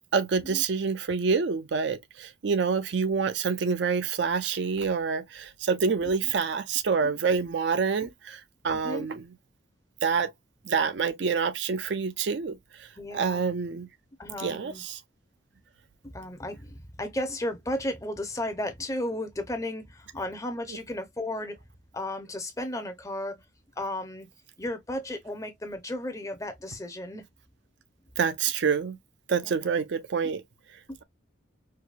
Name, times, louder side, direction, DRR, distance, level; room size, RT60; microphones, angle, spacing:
voice 1, 0.1-9.2 10.0-10.3 10.6-13.9 14.4-15.0 28.2-29.0 29.3-30.4, right 5 dB, 65° right, 0.5 m, -27 dB
voice 2, 8.7-9.1 13.0-13.4 14.2-14.8 16.0-21.6 21.9-23.4 23.8-24.3 24.6-27.3 29.4-29.5 30.2-30.3 30.9-31.0, left 1 dB, 15° left, 0.6 m, -34 dB
4.6 x 2.3 x 2.4 m
head